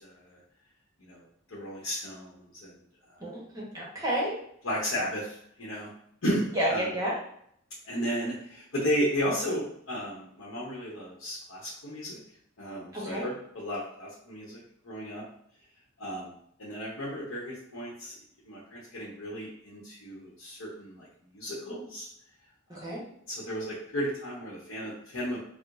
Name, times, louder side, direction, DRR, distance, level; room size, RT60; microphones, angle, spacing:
voice 1, 0.0-0.4 1.0-1.2 1.5-2.7 3.1-3.2 4.6-5.9 6.2-6.9 7.8-12.2 12.6-15.2 16.0-18.1 18.4-21.1 21.3-22.1 22.7-22.9 23.3-25.4, equal, 80° left, -5 dB, 0.8 m, -34 dB
voice 2, 3.2-4.3 6.5-7.2 12.9-13.3 22.7-23.0, right 1 dB, 15° right, -5 dB, 0.9 m, -30 dB
4.5 x 2.0 x 2.5 m, 0.69 s
head